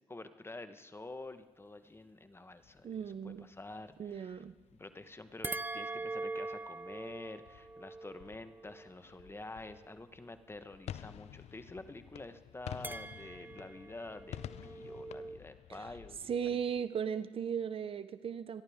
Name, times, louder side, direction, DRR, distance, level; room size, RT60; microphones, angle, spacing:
voice 1, 0.1-4.4 4.7-16.6, left 2 dB, 20° left, 10 dB, 1.1 m, -48 dB
sound 1, 2.6-16.8, left 11 dB, 70° left, 0.5 m, -52 dB
voice 2, 2.8-3.5 4.0-4.5 15.8-15.9 16.3-18.6, right 7 dB, 55° right, 14 dB, 0.6 m, -36 dB
sound 2, 5.4-9.9 12.8-15.4, right 3 dB, 15° right, 0.7 m, -43 dB
27.0 x 11.5 x 3.6 m, 1.3 s
supercardioid pair, 60°, 11 cm